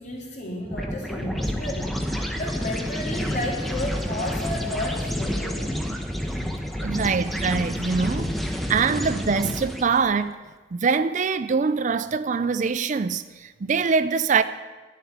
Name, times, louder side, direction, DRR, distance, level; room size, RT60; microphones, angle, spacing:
voice 1, 0.0-5.6, left 1 dB, 40° left, 3.3 m, -32 dB
sound 1, 0.6-10.1, equal, ahead, 1.1 m, -29 dB
voice 2, 6.8-8.3 8.7-10.3 10.7-14.4, right 5 dB, 40° right, 0.4 m, -23 dB
12.0 x 7.5 x 9.5 m
head